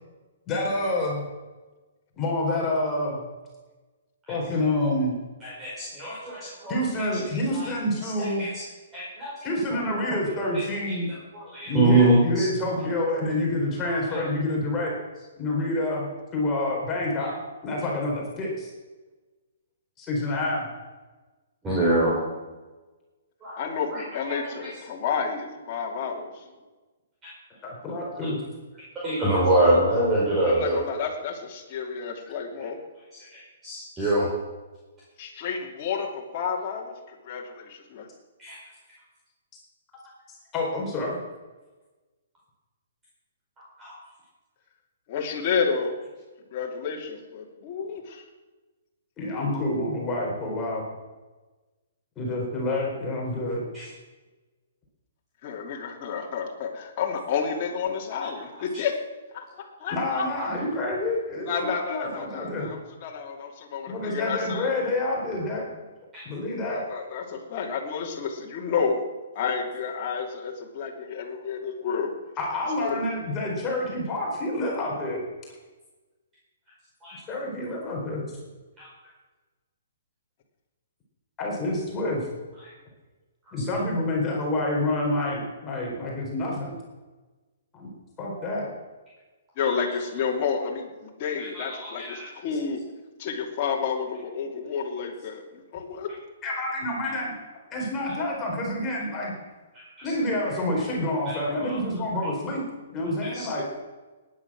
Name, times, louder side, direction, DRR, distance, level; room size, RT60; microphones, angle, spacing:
voice 1, 0.5-1.2 2.2-3.2 4.3-5.2 6.7-8.5 9.4-11.1 11.6-14.9 15.4-17.3 17.6-18.7 20.0-20.7 27.6-28.4 40.3-41.2 49.2-50.9 52.2-53.6 59.9-62.7 63.9-65.8 66.2-66.8 72.4-75.2 77.3-78.3 81.4-82.3 83.5-86.8 87.7-87.9 88.2-88.7 96.4-97.3 97.7-99.3 100.0-102.6 102.9-103.6, left 1 dB, 15° left, -3 dB, 4.2 m, -28 dB
voice 2, 5.4-6.7 7.5-7.7 8.2-8.6 8.9-9.3 9.7-10.2 10.9-11.0 11.3-12.5 13.8-14.2 21.6-22.2 23.4-24.7 28.2-28.3 29.0-30.8 33.3-34.3 38.4-38.6 43.8-43.9 53.7-53.8 58.5-58.8 66.1-66.2 77.0-77.2 78.8-78.9 89.6-89.8 91.5-92.3 99.7-100.1 101.3-101.8 103.3-103.5, right 1 dB, 15° right, -7 dB, 5.4 m, -25 dB
voice 3, 23.6-26.4 29.6-29.8 30.5-32.8 35.2-38.1 45.1-46.0 46.5-48.2 55.4-59.0 59.3-60.6 61.4-64.7 66.7-69.0 69.3-72.1 72.8-73.0 89.6-92.8 93.2-96.1 103.5-103.6, left 6 dB, 35° left, -1 dB, 3.0 m, -30 dB
19.0 x 10.0 x 6.2 m, 1.2 s
hypercardioid pair, 155°, 0 cm